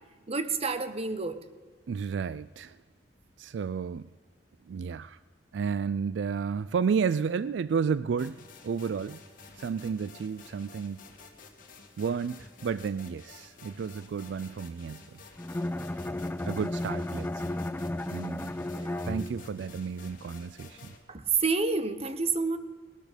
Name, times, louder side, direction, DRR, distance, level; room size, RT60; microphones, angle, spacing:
voice 1, 0.3-1.4 18.7-19.0 21.1-22.6, right 4 dB, 35° right, 11 dB, 1.0 m, -29 dB
voice 2, 1.9-2.8 3.4-4.1 4.7-5.2 5.5-9.2 9.6-11.0 12.0-15.2 16.5-17.5 18.1-18.5 19.0-20.9, right 6 dB, 70° right, 17 dB, 0.3 m, -32 dB
sound 1, 8.2-21.0, left 4 dB, 50° left, 2.0 m, -51 dB
Bowed string instrument, 15.4-19.7, left 1 dB, 10° left, 0.4 m, -34 dB
19.5 x 12.5 x 5.1 m, 1.5 s
head